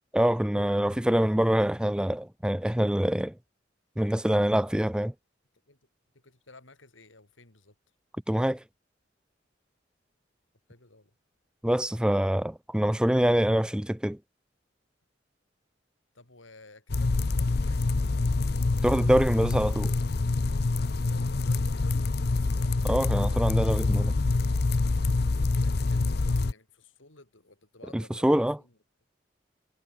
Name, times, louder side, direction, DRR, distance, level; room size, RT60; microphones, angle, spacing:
voice 1, 0.1-3.3 4.0-5.1 8.3-8.6 11.6-14.2 18.8-19.9 22.8-24.1 27.9-28.6, equal, 5° right, 0.4 m, -25 dB
voice 2, 6.1-7.7 10.7-11.1 16.1-17.8 21.0-22.6 25.6-28.8, left 3 dB, 85° left, 4.8 m, -54 dB
sound 1, 16.9-26.5, left 3 dB, 55° left, 0.7 m, -26 dB
head